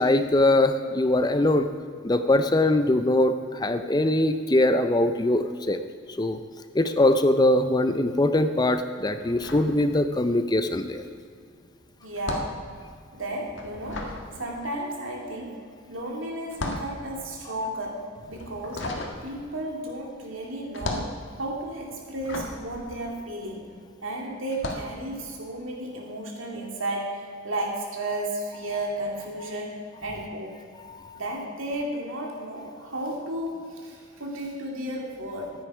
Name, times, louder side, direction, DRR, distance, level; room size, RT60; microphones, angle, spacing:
voice 1, 0.0-1.7 2.0-5.8 6.2-6.4 6.7-11.0, left 1 dB, 20° left, 9 dB, 0.5 m, -22 dB
sound 1, 9.2-10.5 10.7-23.9 24.4-25.0, left 2 dB, 75° left, 1.6 m, -36 dB
voice 2, 12.0-12.6 13.1-14.1 14.4-15.6 15.9-18.9 19.2-21.1 21.4-23.6 24.0-30.6 31.1-35.5, right 1 dB, 85° right, -1 dB, 2.5 m, -33 dB
14.5 x 9.5 x 4.9 m, 2.2 s
head